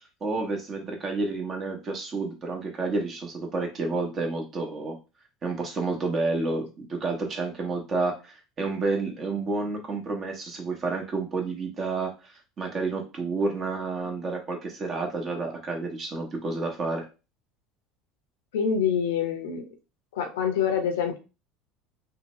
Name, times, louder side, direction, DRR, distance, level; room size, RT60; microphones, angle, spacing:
voice 1, 0.2-4.9 5.4-17.0, right 3 dB, 40° right, 2 dB, 1.0 m, -30 dB
voice 2, 18.5-19.7 20.1-21.2, left 7 dB, 85° left, 6 dB, 0.6 m, -26 dB
2.8 x 2.2 x 2.9 m, 0.30 s
hypercardioid pair, 85°, 0 cm